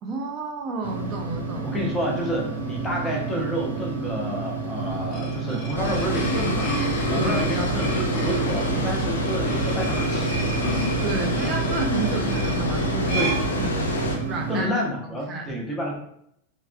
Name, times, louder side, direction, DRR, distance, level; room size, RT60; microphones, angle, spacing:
voice 1, 0.0-1.7 7.2-7.4 11.0-13.3 13.6-14.0 14.2-14.7 15.3-15.5, right 3 dB, 35° right, 2 dB, 0.4 m, -31 dB
sound 1, 0.8-14.6, right 5 dB, 80° right, 0.6 m, -30 dB
voice 2, 1.6-10.5 11.4-11.5 13.1-13.4 14.5-16.0, equal, 10° left, -2 dB, 0.7 m, -29 dB
sound 2, 4.9-14.2, equal, 30° left, 1.1 m, -32 dB
Water, 5.7-14.2, left 1 dB, 75° left, 0.4 m, -27 dB
3.3 x 2.1 x 2.2 m, 0.73 s
figure-of-eight pair, 90°, 0 cm